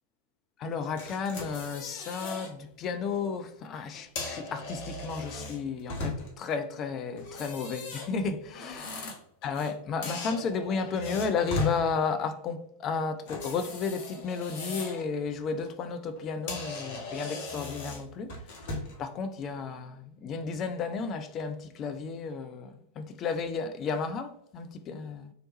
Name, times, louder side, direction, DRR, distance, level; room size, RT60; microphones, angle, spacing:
voice 1, 0.6-9.1 9.4-18.3 19.0-25.3, left 5 dB, 30° left, 0.4 m, -33 dB
sound 1, 1.0-2.5 2.9-3.2 3.9-6.5 7.2-9.7 10.0-11.8 13.3-15.1 15.5-15.7 16.2-16.3 16.5-19.0, left 3 dB, 50° left, 0.9 m, -38 dB
3.1 x 2.9 x 2.9 m
figure-of-eight pair, 90°, 0 cm